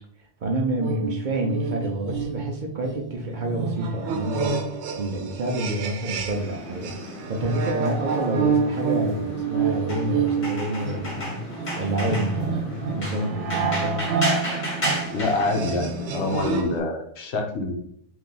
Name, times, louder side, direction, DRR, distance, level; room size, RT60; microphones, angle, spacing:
voice 1, 0.4-4.6 4.9-6.9 7.3-11.4 11.8-14.1, right 1 dB, 55° right, 1 dB, 0.6 m, -28 dB
sound 1, 0.8-6.6 6.8-16.8, right 6 dB, 90° right, 0.9 m, -29 dB
sound 2, 6.3-16.3, equal, 45° left, 1.2 m, -33 dB
voice 2, 15.1-17.7, left 3 dB, 80° left, 2 dB, 1.0 m, -26 dB
2.9 x 2.7 x 3.7 m, 0.71 s
omnidirectional pair, 1.1 m